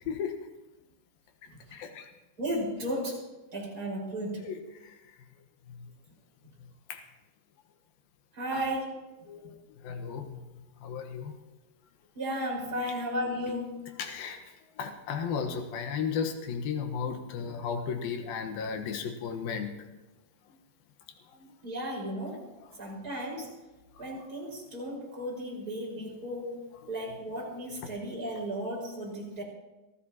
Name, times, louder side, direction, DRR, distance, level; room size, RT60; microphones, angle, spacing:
voice 1, 1.7-2.1 4.4-4.9 6.9-7.0 8.5-8.6 9.3-9.5 9.8-10.4 10.8-11.3 14.0-14.4 14.8-19.7 21.4-21.5, left 6 dB, 75° left, 5 dB, 3.0 m, -34 dB
voice 2, 2.4-3.2 3.5-4.5 8.4-8.9 12.1-13.9 21.6-22.4 22.8-23.5 24.0-26.6 26.9-29.4, equal, 25° right, -4 dB, 5.8 m, -34 dB
25.0 x 14.5 x 3.0 m, 1.1 s
omnidirectional pair, 4.5 m